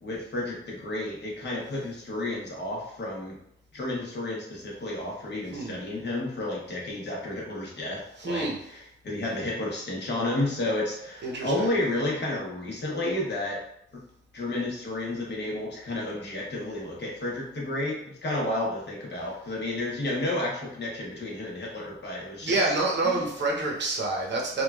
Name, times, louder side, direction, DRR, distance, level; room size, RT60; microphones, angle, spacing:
voice 1, 0.0-3.4 3.7-13.6 14.3-22.6 23.0-23.2, left 1 dB, 55° left, -3 dB, 0.9 m, -31 dB
voice 2, 8.2-8.6 11.2-11.7 22.4-24.6, right 2 dB, 55° right, -2 dB, 0.7 m, -27 dB
3.1 x 2.2 x 2.3 m, 0.72 s
wide cardioid pair, 130°, 21 cm